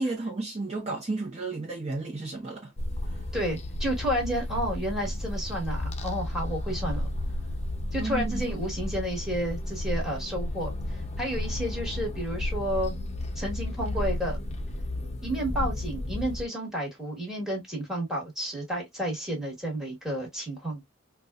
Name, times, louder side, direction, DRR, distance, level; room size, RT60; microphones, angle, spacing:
voice 1, 0.0-2.7 3.0-3.3 8.0-8.6, right 2 dB, 35° right, 0.8 m, -33 dB
sound 1, 2.8-16.5, left 1 dB, 35° left, 0.6 m, -32 dB
voice 2, 3.3-7.1 7.9-13.0 13.3-14.4 15.2-20.8, equal, ahead, 1.4 m, -31 dB
3.9 x 2.3 x 2.3 m
head